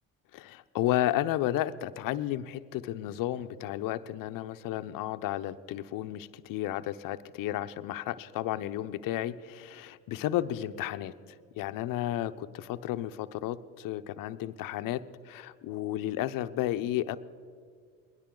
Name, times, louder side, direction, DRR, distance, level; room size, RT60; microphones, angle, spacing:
voice 1, 0.3-11.1 11.5-17.2, left 13 dB, 65° left, 12 dB, 0.8 m, -32 dB
20.5 x 17.0 x 3.9 m, 2.1 s
supercardioid pair, 75°, 35 cm